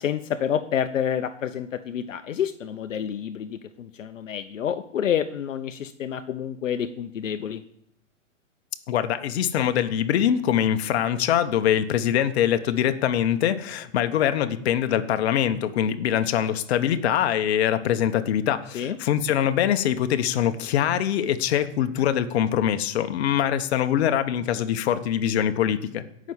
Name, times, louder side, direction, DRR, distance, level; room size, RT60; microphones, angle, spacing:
voice 1, 0.0-7.6 18.7-19.0, left 9 dB, 75° left, 9 dB, 1.0 m, -28 dB
voice 2, 8.9-26.0, left 10 dB, 55° left, 10 dB, 1.3 m, -23 dB
17.0 x 6.4 x 7.2 m, 0.73 s
hypercardioid pair, 125°, 39 cm